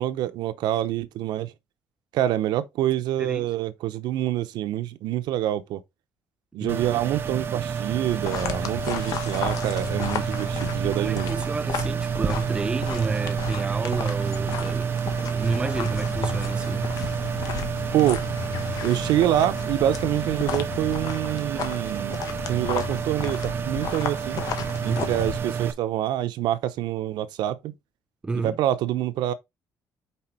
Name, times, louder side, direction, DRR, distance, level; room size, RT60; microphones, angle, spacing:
voice 1, 0.0-1.5 2.1-5.8 6.5-11.4 17.9-18.2 18.8-22.2 22.5-24.4 24.8-27.7 28.4-29.3, right 12 dB, 85° right, 0.8 m, -26 dB
sound 1, 6.7-25.7, right 7 dB, 30° right, 0.7 m, -29 dB
sound 2, 8.1-25.4, left 8 dB, 60° left, 1.2 m, -34 dB
voice 2, 10.8-16.9 24.9-25.1 28.2-28.6, right 4 dB, 15° right, 0.3 m, -30 dB
sound 3, 15.5-21.0, left 16 dB, 85° left, 0.4 m, -41 dB
5.6 x 4.4 x 4.5 m
cardioid pair, 170°, 7 cm